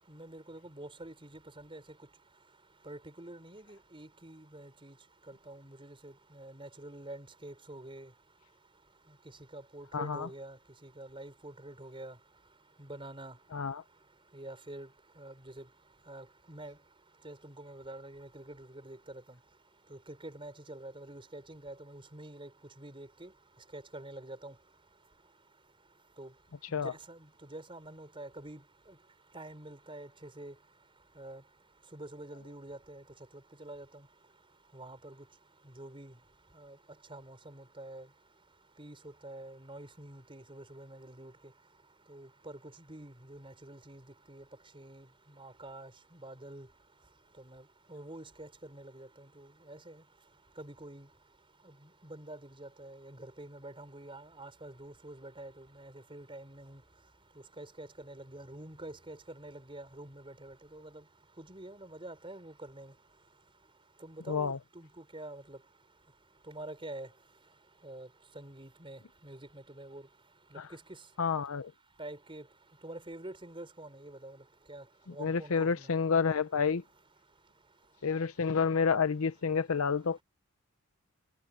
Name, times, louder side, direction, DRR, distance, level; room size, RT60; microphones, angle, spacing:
voice 1, 0.1-1.8 2.9-4.9 5.3-8.1 9.5-12.2 12.8-13.4 14.3-14.9 15.2-15.7 16.1-16.8 17.2-19.4 19.9-22.5 22.8-23.3 23.7-24.5 26.2-26.3 26.7-28.6 29.3-30.5 31.2-31.4 31.9-33.0 33.6-33.9 34.7-35.2 35.8-36.1 36.6-36.8 37.1-38.1 38.8-39.0 39.2-41.3 42.1-42.6 42.9-44.0 44.3-44.4 44.7-45.1 45.4-45.9 46.2-46.7 47.4-47.6 47.9-50.0 50.6-51.1 52.0-56.8 57.6-61.0 61.4-62.9 64.0-65.6 66.5-67.1 67.8-68.1 68.3-70.0 70.7-70.8 72.0-72.4 72.8-74.4 74.7-74.8 75.1-75.9, right 1 dB, 25° right, 5.9 m, -47 dB
voice 2, 9.9-10.3 13.5-13.8 26.7-26.9 64.3-64.6 71.2-71.7 75.2-76.8 78.0-80.2, left 5 dB, 70° left, 0.7 m, -29 dB
head